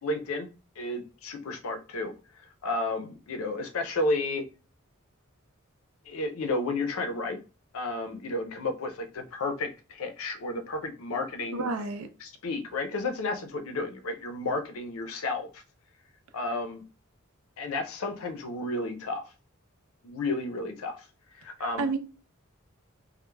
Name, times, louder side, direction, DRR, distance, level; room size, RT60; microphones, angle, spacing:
voice 1, 0.0-0.5 0.8-2.1 2.6-4.4 6.1-7.4 7.7-11.7 12.2-15.6 16.3-16.8 17.6-19.2 20.0-21.0 21.4-21.9, left 2 dB, 80° left, 0.5 m, -32 dB
voice 2, 11.5-12.1 21.8-22.0, right 3 dB, 80° right, 0.4 m, -29 dB
2.2 x 2.0 x 3.1 m
head